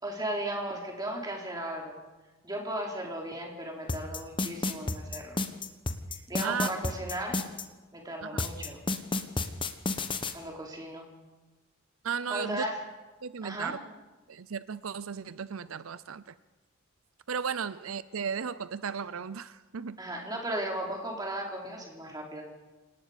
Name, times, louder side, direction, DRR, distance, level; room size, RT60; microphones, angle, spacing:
voice 1, 0.0-2.0 2.4-5.4 6.1-7.4 7.9-8.8 10.3-11.1 12.3-12.8 13.4-13.8 20.0-22.4, right 1 dB, 20° right, 0 dB, 3.9 m, -36 dB
sound 1, 3.9-7.6 8.4-10.3, left 2 dB, 25° left, 1.2 m, -30 dB
voice 2, 12.0-12.6 13.2-13.8 14.3-16.3 17.3-20.0, right 6 dB, 85° right, 15 dB, 0.6 m, -35 dB
28.0 x 18.5 x 5.1 m, 1.2 s
head